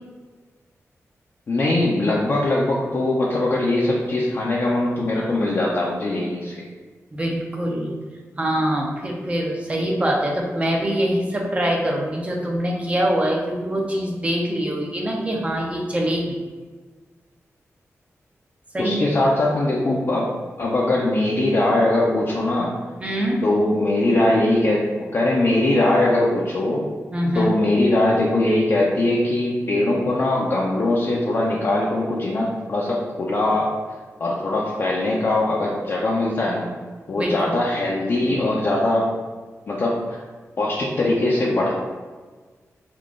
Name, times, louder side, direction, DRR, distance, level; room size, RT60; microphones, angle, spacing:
voice 1, 1.5-6.6 18.8-20.3 20.6-22.7 23.4-26.8 27.4-33.7 34.2-36.7 37.1-39.1 39.7-40.2 40.6-41.8, left 2 dB, 50° left, -4 dB, 0.5 m, -21 dB
voice 2, 7.1-7.9 8.4-16.4 18.7-19.1 23.0-23.4 27.1-27.5 37.2-37.5, equal, 25° right, 0 dB, 0.6 m, -24 dB
3.7 x 2.4 x 3.6 m, 1.4 s
wide cardioid pair, 100°, 5 cm